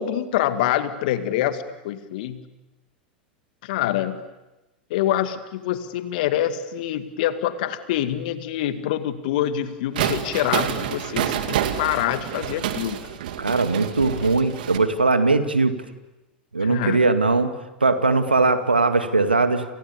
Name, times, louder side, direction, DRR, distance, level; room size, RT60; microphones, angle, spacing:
voice 1, 0.0-2.4 3.6-4.3 4.9-13.2 14.2-14.3 16.6-17.1, left 11 dB, 60° left, 10 dB, 2.2 m, -26 dB
sound 1, 9.9-14.8, right 10 dB, 60° right, 2.3 m, -28 dB
voice 2, 13.4-15.8 16.5-17.5 17.8-19.6, right 3 dB, 85° right, 9 dB, 2.2 m, -20 dB
29.0 x 29.0 x 7.1 m, 1.0 s
figure-of-eight pair, 90°, 5 cm